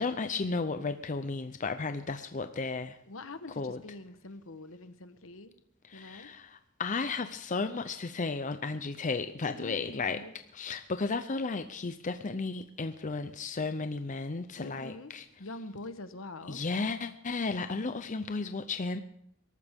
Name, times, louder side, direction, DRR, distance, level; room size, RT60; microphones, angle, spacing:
voice 1, 0.0-3.0 3.6-3.8 5.9-10.2 10.5-15.2 16.5-19.0, left 4 dB, 40° left, 9 dB, 0.6 m, -34 dB
voice 2, 3.1-5.5 5.9-6.3 9.6-10.3 14.6-15.1 15.4-16.6, left 2 dB, 70° left, 11 dB, 1.2 m, -44 dB
22.5 x 13.0 x 3.6 m, 0.74 s
head